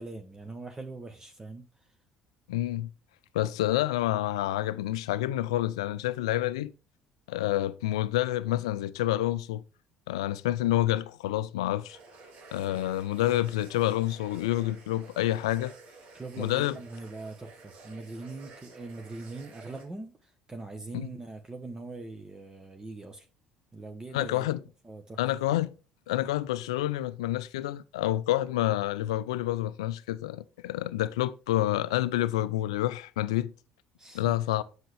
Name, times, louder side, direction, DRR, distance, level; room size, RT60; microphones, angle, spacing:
voice 1, 0.0-2.0 12.7-12.9 16.1-23.3 23.7-24.5 24.8-25.2 34.0-34.4, right 3 dB, 20° right, 1.1 m, -42 dB
voice 2, 2.5-2.9 3.3-6.7 7.3-9.6 10.1-12.0 12.5-15.7 16.4-16.8 20.9-21.1 24.1-24.6 25.2-25.7 26.1-33.5 34.1-34.6, left 14 dB, 80° left, 0.4 m, -28 dB
sound 1, 11.9-19.9, right 3 dB, 60° right, 2.1 m, -51 dB
7.7 x 6.4 x 3.3 m
hypercardioid pair, 60°, 3 cm